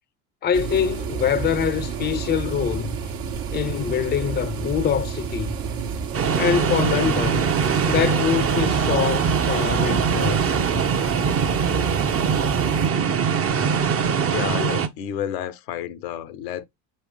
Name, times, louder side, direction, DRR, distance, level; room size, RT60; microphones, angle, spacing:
voice 1, 0.4-2.9 3.5-5.5 6.4-7.4 7.9-10.6, left 8 dB, 20° left, 0.5 m, -24 dB
sound 1, 0.5-12.9, right 6 dB, 65° right, 1.2 m, -30 dB
sound 2, 6.1-14.9, right 6 dB, 30° right, 0.7 m, -22 dB
voice 2, 13.5-16.7, left 10 dB, 80° left, 0.8 m, -31 dB
5.6 x 3.0 x 3.2 m
hypercardioid pair, 75°, 47 cm